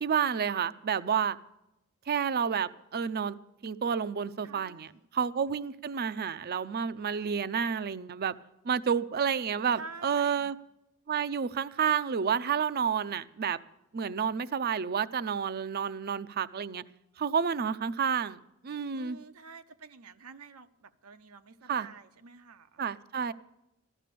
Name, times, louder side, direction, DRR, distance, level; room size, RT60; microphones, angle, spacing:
voice 1, 0.0-1.4 2.1-3.4 3.6-8.3 8.6-10.5 11.1-13.6 13.9-16.8 17.2-19.2 21.7-21.9 22.8-23.3, right 7 dB, 45° right, 0.5 m, -30 dB
voice 2, 4.4-5.0 9.7-10.5 18.9-22.8, right 4 dB, 80° right, 0.7 m, -48 dB
14.5 x 12.0 x 6.8 m
head